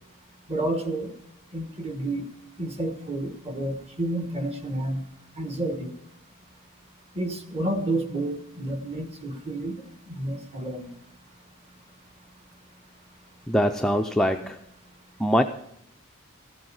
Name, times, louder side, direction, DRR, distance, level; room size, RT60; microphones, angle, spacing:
voice 1, 0.5-1.1 1.5-2.2 2.6-5.0 5.4-5.9 7.1-10.9, right 1 dB, 30° right, 7 dB, 1.3 m, -30 dB
voice 2, 13.5-14.6 15.2-15.4, equal, 5° left, 3 dB, 0.4 m, -22 dB
15.0 x 7.8 x 5.5 m, 0.75 s
head